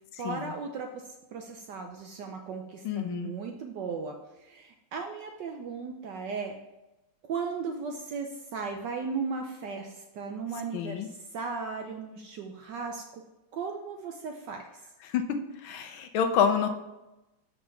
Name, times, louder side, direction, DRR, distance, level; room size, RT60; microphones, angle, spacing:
voice 1, 0.2-1.0 1.3-6.6 7.3-13.2 13.5-14.8, right 5 dB, 70° right, 3 dB, 1.0 m, -36 dB
voice 2, 2.8-3.3 10.7-11.1 15.0-15.4 15.6-16.7, left 7 dB, 75° left, 7 dB, 1.4 m, -28 dB
5.4 x 5.3 x 5.9 m, 0.98 s
omnidirectional pair, 2.4 m